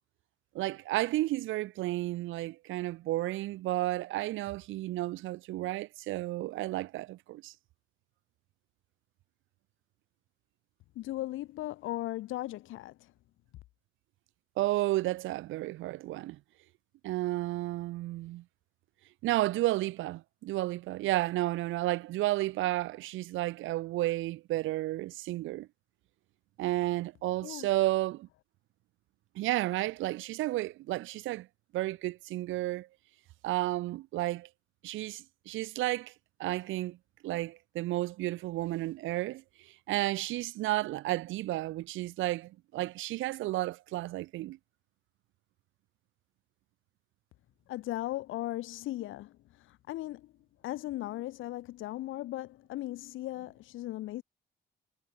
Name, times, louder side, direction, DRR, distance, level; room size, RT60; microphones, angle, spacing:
voice 1, 0.5-7.5 14.6-16.4 17.0-18.4 19.2-25.7 26.6-28.3 29.4-31.5 31.7-32.9 33.4-34.5 34.8-36.1 36.4-37.0 37.2-44.6, right 17 dB, 80° right, 0.5 m, -32 dB
voice 2, 10.9-13.1 27.4-27.7 47.7-50.3 50.6-54.2, left 16 dB, 80° left, 0.9 m, -37 dB
cardioid pair, 90°, 20 cm